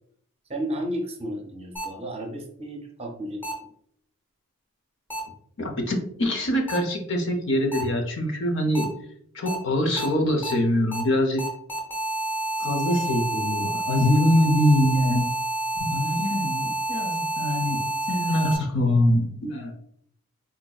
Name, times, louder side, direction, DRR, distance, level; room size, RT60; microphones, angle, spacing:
voice 1, 0.5-3.7, equal, 25° right, 1 dB, 0.5 m, -33 dB
sound 1, 1.8-1.9 3.4-3.5 5.1-5.2 6.7-6.8 7.7-7.8 8.8-8.9 9.5-9.6 10.0-10.1 10.4-10.5 10.9-11.0 11.4-18.6, right 1 dB, 10° left, 0.7 m, -29 dB
voice 2, 5.6-8.9 9.3-11.4 12.6-15.3 15.8-19.7, left 1 dB, 55° left, 3 dB, 0.6 m, -24 dB
3.9 x 2.5 x 2.3 m, 0.66 s
head